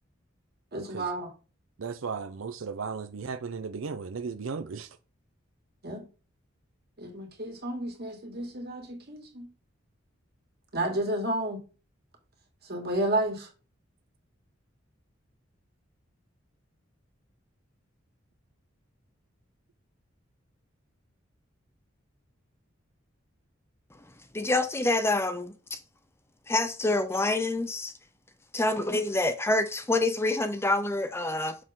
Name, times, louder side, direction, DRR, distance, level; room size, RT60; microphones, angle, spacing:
voice 1, 0.7-1.3 5.8-6.1 7.0-9.5 10.7-11.6 12.7-13.5, right 1 dB, 55° right, 2.1 m, -31 dB
voice 2, 1.8-4.9, right 5 dB, 85° right, 0.5 m, -35 dB
voice 3, 24.3-25.8 26.5-27.9 28.5-31.6, left 2 dB, 15° left, 0.5 m, -27 dB
6.6 x 6.1 x 3.7 m
head